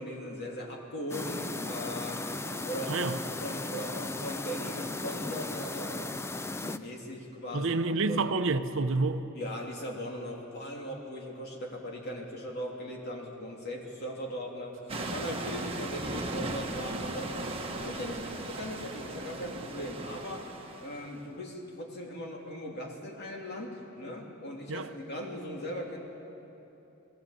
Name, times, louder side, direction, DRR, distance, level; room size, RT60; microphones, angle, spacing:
voice 1, 0.0-2.2 2.6-3.1 3.4-7.7 8.1-8.2 9.3-14.8 15.1-17.4 17.7-20.4 20.8-26.0, equal, 55° left, -1 dB, 3.0 m, -39 dB
sound 1, 1.1-6.8, left 2 dB, 15° left, 0.5 m, -36 dB
voice 2, 7.5-9.2 24.7-24.9, right 3 dB, 65° right, 10 dB, 0.7 m, -28 dB
sound 2, 14.9-21.2, right 2 dB, 30° right, 1.4 m, -37 dB
20.5 x 16.0 x 8.7 m, 2.9 s
head